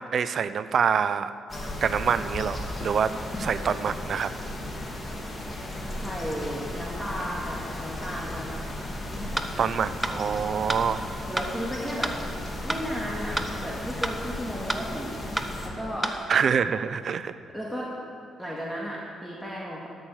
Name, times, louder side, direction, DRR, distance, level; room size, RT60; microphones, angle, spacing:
voice 1, 0.0-1.3 1.8-4.3 9.6-11.0 16.3-17.4, right 7 dB, 60° right, 14 dB, 0.5 m, -26 dB
sound 1, 1.5-15.7, left 1 dB, 30° left, 2.5 m, -35 dB
voice 2, 6.0-8.6 9.2-9.5 11.3-12.2 12.6-16.3 17.5-17.9 18.4-19.9, equal, ahead, -4 dB, 1.9 m, -34 dB
sound 2, 9.4-9.5 10.0-10.2 10.7-10.8 11.4-11.5 12.0-12.2 12.7-12.8 13.4-13.5 14.0-14.2 14.7-14.8 15.4-15.5 16.0-16.2, right 2 dB, 20° right, 1.0 m, -28 dB
13.0 x 6.5 x 7.2 m, 2.5 s
supercardioid pair, 55°, 0 cm